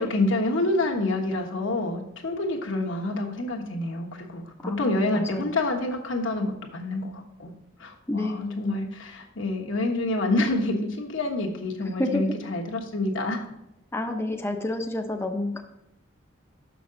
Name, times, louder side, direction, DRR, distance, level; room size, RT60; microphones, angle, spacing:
voice 1, 0.0-7.5 7.8-13.4, left 2 dB, 75° left, 1 dB, 1.3 m, -27 dB
voice 2, 4.6-5.5 8.1-8.9 11.9-12.2 13.9-15.6, left 1 dB, 10° left, 3 dB, 0.6 m, -30 dB
6.6 x 6.1 x 3.9 m, 0.85 s
head